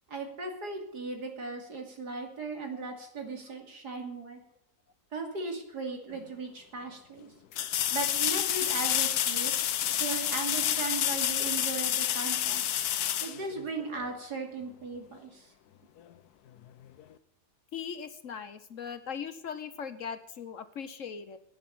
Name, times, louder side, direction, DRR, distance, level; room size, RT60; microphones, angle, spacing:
voice 1, 0.1-4.4 5.1-7.3 7.9-9.5 9.8-12.6 13.2-15.5, right 3 dB, 80° right, 3 dB, 3.3 m, -37 dB
sound 1, 6.1-6.2 7.5-14.1 17.0-17.1, left 11 dB, 75° left, 1.3 m, -29 dB
voice 2, 17.7-21.4, left 7 dB, 55° left, 11 dB, 1.3 m, -39 dB
11.0 x 9.6 x 9.3 m, 0.71 s
omnidirectional pair, 1.7 m